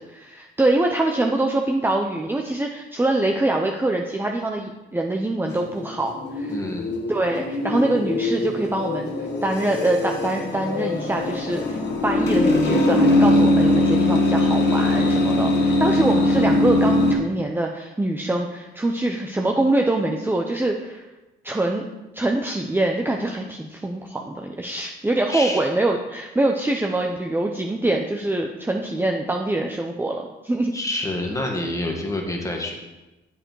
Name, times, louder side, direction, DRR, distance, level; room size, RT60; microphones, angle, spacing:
voice 1, 0.0-6.5 7.1-9.1 9.4-21.0 21.4-21.9 22.1-30.7, right 2 dB, 10° right, 1 dB, 0.8 m, -24 dB
sound 1, 5.5-17.1, left 2 dB, 60° left, 1.8 m, -21 dB
voice 2, 6.5-6.9 25.3-25.6 30.7-32.7, left 1 dB, 15° left, 1 dB, 2.0 m, -27 dB
7.8 x 7.5 x 4.8 m, 1.0 s
cardioid pair, 90°, 20 cm